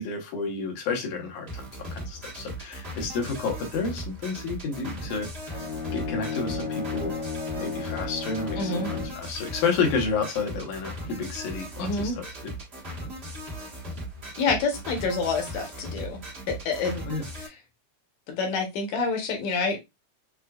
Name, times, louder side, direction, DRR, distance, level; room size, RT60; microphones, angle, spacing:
voice 1, 0.0-5.6 5.9-7.1 7.6-12.5 17.1-17.3, left 4 dB, 90° left, 2.5 m, -30 dB
sound 1, 1.5-17.5, equal, 40° right, 0.9 m, -38 dB
Bowed string instrument, 5.4-9.3, left 5 dB, 45° left, 1.0 m, -33 dB
voice 2, 8.6-8.9 11.8-12.2 14.4-16.2 16.5-17.1 17.4-17.5 18.3-19.8, left 4 dB, 70° left, 2.2 m, -28 dB
6.2 x 2.3 x 2.2 m
omnidirectional pair, 3.4 m